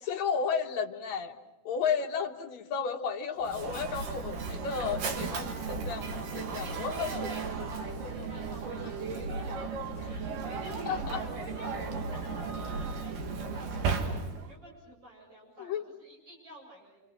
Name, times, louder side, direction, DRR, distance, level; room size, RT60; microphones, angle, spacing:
voice 1, 0.0-1.4 1.6-7.4 8.1-8.3 8.8-8.9 10.9-11.2 15.6-15.8, left 6 dB, 60° left, 2 dB, 2.6 m, -33 dB
Mechanisms, 3.4-14.6, right 4 dB, 75° right, 3.6 m, -35 dB
voice 2, 6.4-9.6 10.0-17.0, equal, 40° right, -2 dB, 8.7 m, -49 dB
29.5 x 27.5 x 6.1 m, 0.97 s
omnidirectional pair, 3.8 m